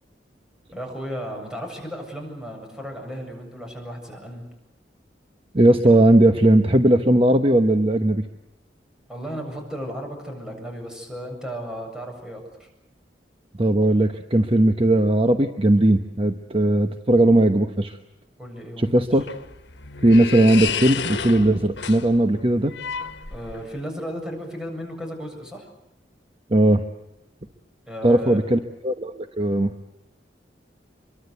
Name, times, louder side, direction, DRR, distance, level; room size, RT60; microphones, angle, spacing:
voice 1, 0.7-4.4 9.1-12.7 18.4-19.0 23.3-25.7 27.9-28.4, equal, 5° right, 2 dB, 7.6 m, -34 dB
voice 2, 5.5-8.2 13.6-18.0 18.8-19.2 20.0-22.7 26.5-26.8 28.0-29.7, right 1 dB, 30° right, 7 dB, 1.1 m, -18 dB
sound 1, 18.8-23.8, left 6 dB, 80° left, 1.5 m, -31 dB
27.0 x 23.5 x 8.2 m, 0.87 s
head